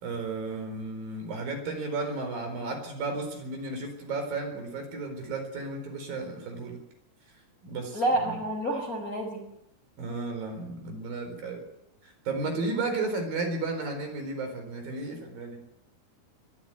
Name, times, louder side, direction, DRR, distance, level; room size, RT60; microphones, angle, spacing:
voice 1, 0.0-6.8 7.6-8.4 10.0-11.6 12.0-15.6, right 3 dB, 60° right, 5 dB, 6.0 m, -33 dB
voice 2, 7.9-9.4, right 1 dB, 20° left, 3 dB, 4.4 m, -28 dB
22.5 x 13.5 x 9.3 m, 0.81 s
omnidirectional pair, 4.5 m